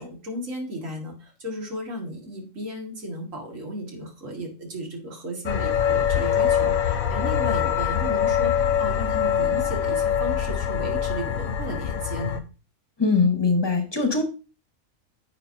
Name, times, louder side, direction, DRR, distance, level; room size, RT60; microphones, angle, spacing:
voice 1, 0.0-12.4, equal, 70° right, 0 dB, 2.2 m, -34 dB
sound 1, 5.5-12.4, left 8 dB, 90° left, 1.1 m, -24 dB
voice 2, 13.0-14.2, left 4 dB, 20° left, 4 dB, 1.0 m, -21 dB
8.2 x 5.6 x 2.6 m, 0.33 s
omnidirectional pair, 1.4 m